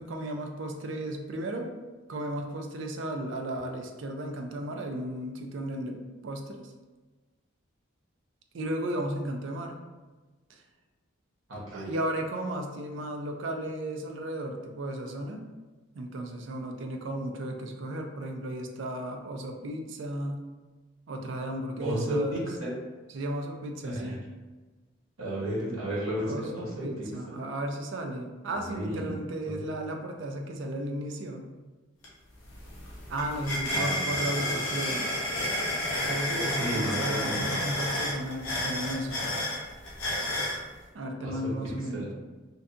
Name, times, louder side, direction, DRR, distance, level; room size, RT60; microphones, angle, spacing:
voice 1, 0.0-1.8 2.1-6.7 8.5-9.8 10.5-10.6 11.7-15.4 15.9-20.4 21.1-22.5 23.1-24.2 26.2-31.5 33.1-35.1 36.1-39.2 40.9-42.1, right 1 dB, 65° right, 3 dB, 0.3 m, -34 dB
voice 2, 11.5-11.9 21.8-22.7 23.8-24.2 25.2-27.1 28.6-29.1 29.5-29.6 33.7-34.2 36.6-37.5 41.2-41.5 41.9-42.1, equal, 85° right, -5 dB, 0.9 m, -33 dB
sound 1, 32.0-32.1 32.4-40.6, left 1 dB, 75° left, 0.7 m, -31 dB
2.6 x 2.2 x 2.4 m, 1.3 s
head